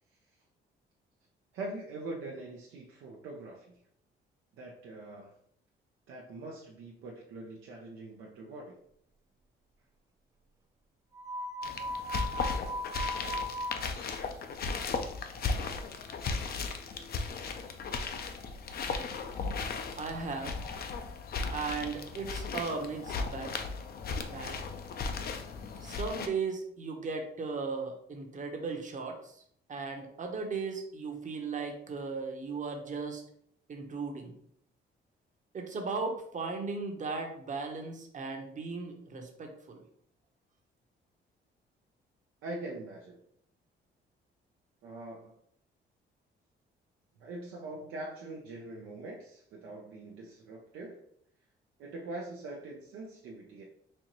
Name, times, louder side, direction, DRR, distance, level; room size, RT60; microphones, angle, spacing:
voice 1, 1.5-3.6 4.6-5.3 6.1-8.8 42.4-43.2 44.8-45.4 47.2-51.0 51.8-53.6, right 2 dB, 90° right, -2 dB, 0.6 m, -43 dB
sound 1, 11.1-13.8, left 1 dB, 15° right, 0.3 m, -36 dB
sound 2, 11.6-26.3, left 4 dB, 50° left, 0.5 m, -36 dB
voice 2, 20.0-20.6 21.5-23.6 24.3-24.6 25.8-29.4 29.7-33.2 33.7-34.3 35.5-39.8, right 4 dB, 40° right, 3 dB, 0.8 m, -37 dB
4.4 x 2.5 x 2.9 m, 0.68 s
cardioid pair, 90°, 20 cm